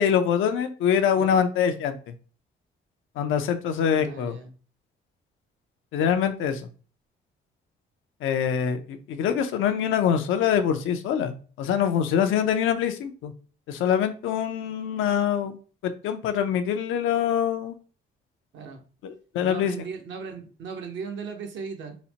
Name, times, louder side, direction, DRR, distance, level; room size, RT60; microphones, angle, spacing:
voice 1, 0.0-2.0 3.2-4.4 5.9-6.6 8.2-13.3 13.7-15.6 15.8-17.7 19.0-19.7, left 8 dB, 85° left, 8 dB, 0.5 m, -24 dB
voice 2, 1.1-1.5 3.9-4.5 18.5-18.8 19.4-22.0, right 5 dB, 70° right, 4 dB, 0.9 m, -37 dB
4.0 x 2.1 x 2.8 m, 0.39 s
cardioid pair, 90°, 20 cm